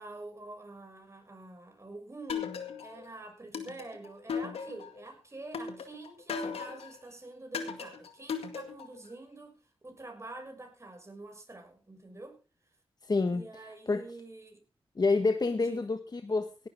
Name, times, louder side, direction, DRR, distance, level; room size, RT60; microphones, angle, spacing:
voice 1, 0.0-9.6 9.8-12.4 13.3-14.6 15.6-15.9, right 2 dB, 30° right, 4 dB, 6.0 m, -47 dB
sound 1, 2.3-3.1 3.5-5.0 5.5-7.0 7.5-9.0, left 6 dB, 85° left, 2.1 m, -37 dB
voice 2, 13.0-13.4 13.9-14.0 14.9-16.7, left 3 dB, 45° left, 7 dB, 1.4 m, -28 dB
18.0 x 12.0 x 3.6 m, 0.32 s
cardioid pair, 50°, 10 cm